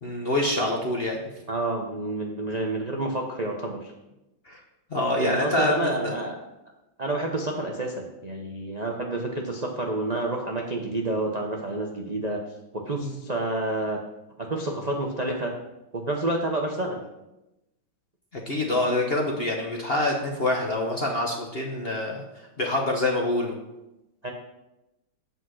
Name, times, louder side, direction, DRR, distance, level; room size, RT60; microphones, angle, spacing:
voice 1, 0.0-1.2 4.5-4.6 4.9-6.1 13.0-13.2 18.3-22.2 22.6-23.6, left 1 dB, 45° left, 0 dB, 0.8 m, -26 dB
voice 2, 1.5-3.9 5.2-6.3 7.0-12.4 12.7-14.0 14.5-15.5 15.9-17.0 24.2-24.3, right 2 dB, 50° right, 0 dB, 0.4 m, -29 dB
8.4 x 5.3 x 6.2 m, 0.95 s
omnidirectional pair, 2.2 m